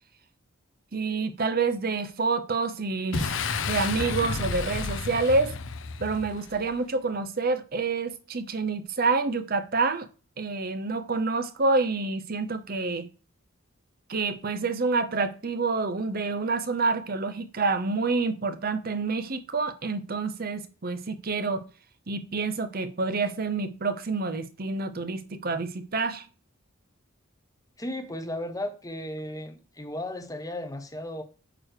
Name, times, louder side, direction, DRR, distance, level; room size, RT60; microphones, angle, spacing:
voice 1, 0.9-5.5 6.0-10.1 10.4-13.1 14.1-21.6 22.1-26.3, right 3 dB, 45° right, 0.8 m, -28 dB
Boom, 3.1-6.7, left 4 dB, 65° left, 0.6 m, -31 dB
voice 2, 27.8-31.2, left 1 dB, 15° left, 0.9 m, -35 dB
8.9 x 3.1 x 6.5 m
head